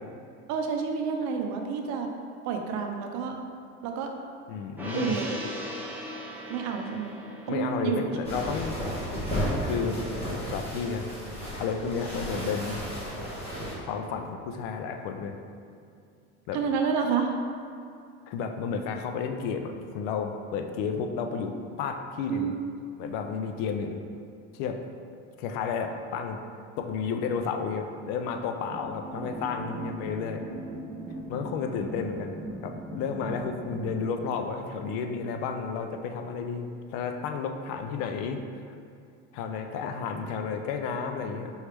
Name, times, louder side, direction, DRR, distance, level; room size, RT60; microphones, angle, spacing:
voice 1, 0.5-2.1 2.4-3.4 3.8-4.1 4.9-5.5 6.5-7.2 7.5-8.4 16.5-17.3 22.3-22.8, right 6 dB, 60° right, 3 dB, 0.6 m, -29 dB
voice 2, 4.5-5.2 7.5-8.8 9.6-10.0 10.4-11.1 11.6-12.8 13.8-15.4 16.5-16.6 18.3-22.5 23.0-24.0 24.5-24.8 25.4-26.4 26.8-30.5 31.3-32.3 32.6-38.8 39.3-41.5, left 5 dB, 75° left, 6 dB, 0.5 m, -32 dB
Gong, 4.8-11.4 11.7-11.9, equal, 5° right, 0.7 m, -41 dB
sound 1, 8.2-13.7, equal, 20° left, 1.3 m, -33 dB
sound 2, 28.7-34.0, right 1 dB, 35° right, 0.9 m, -39 dB
4.6 x 3.2 x 3.3 m, 2.4 s
cardioid pair, 135°, 32 cm